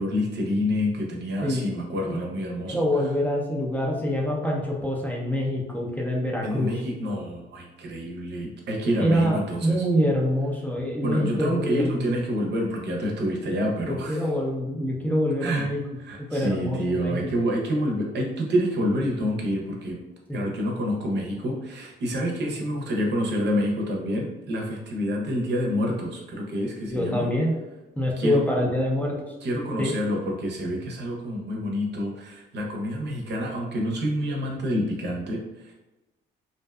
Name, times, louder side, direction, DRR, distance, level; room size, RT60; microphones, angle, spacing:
voice 1, 0.0-2.8 6.4-9.8 11.0-14.2 15.4-15.7 16.0-20.0 20.3-27.3 28.2-28.4 29.4-35.7, equal, 60° right, -1 dB, 0.6 m, -28 dB
voice 2, 2.7-6.7 9.0-12.0 13.9-15.8 16.3-17.3 20.3-20.4 26.9-27.6 28.0-29.2 29.8-29.9, equal, 10° left, -3 dB, 0.5 m, -25 dB
2.6 x 2.2 x 2.2 m, 1.0 s
cardioid pair, 90°, 20 cm